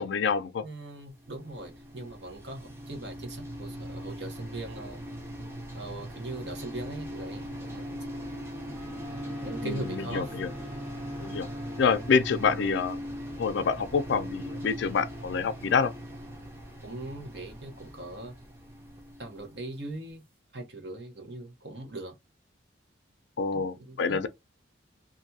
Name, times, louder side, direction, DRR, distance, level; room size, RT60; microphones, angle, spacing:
voice 1, 0.0-0.6 9.6-10.5 11.2-11.5 11.8-13.0 13.4-15.9 23.4-24.3, left 5 dB, 75° left, 0.4 m, -27 dB
voice 2, 0.6-5.0 5.7-8.0 9.4-10.4 16.8-18.3 19.2-20.2 20.5-22.2 23.5-24.2, right 2 dB, 70° right, 0.9 m, -40 dB
sound 1, 1.0-20.0, equal, 15° right, 0.5 m, -40 dB
Wind instrument woodwind instrument, 8.7-12.4, right 1 dB, 35° right, 1.1 m, -45 dB
2.5 x 2.3 x 2.7 m
head